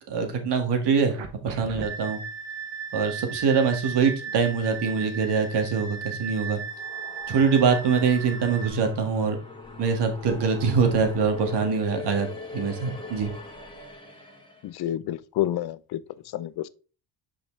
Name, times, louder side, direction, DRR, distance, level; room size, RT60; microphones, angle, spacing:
voice 1, 0.1-1.2 1.4-2.2 2.9-6.6 7.3-9.4 9.8-12.3 12.5-13.3, right 5 dB, 60° right, 1.8 m, -24 dB
sound 1, 1.1-8.7, right 6 dB, 80° right, 1.4 m, -36 dB
sound 2, 6.4-14.7, left 3 dB, 10° left, 2.0 m, -41 dB
voice 2, 14.6-16.0 16.3-16.7, left 12 dB, 55° left, 0.6 m, -29 dB
6.0 x 5.0 x 3.2 m
supercardioid pair, 80°, 46 cm